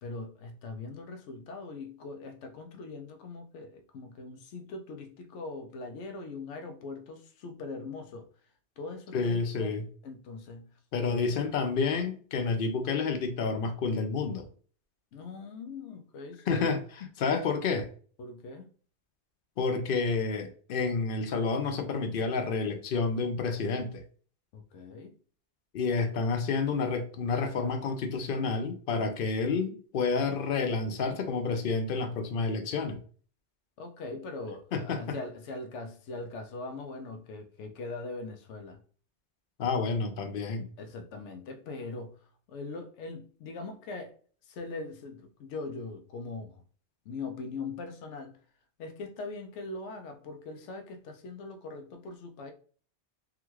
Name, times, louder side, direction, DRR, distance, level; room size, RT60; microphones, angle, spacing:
voice 1, 0.0-8.3 8.8-9.7 10.0-10.8 11.1-11.3 15.1-16.7 18.2-18.7 24.5-25.1 33.8-38.8 40.8-44.2 44.4-46.6 47.1-48.4 48.8-52.5, left 3 dB, 85° left, 0.9 m, -41 dB
voice 2, 9.1-9.9 10.9-14.5 16.5-17.9 19.6-24.0 25.7-33.0 34.7-35.2 39.6-40.7, left 4 dB, 60° left, 0.7 m, -29 dB
3.6 x 2.3 x 3.0 m
omnidirectional pair, 1.2 m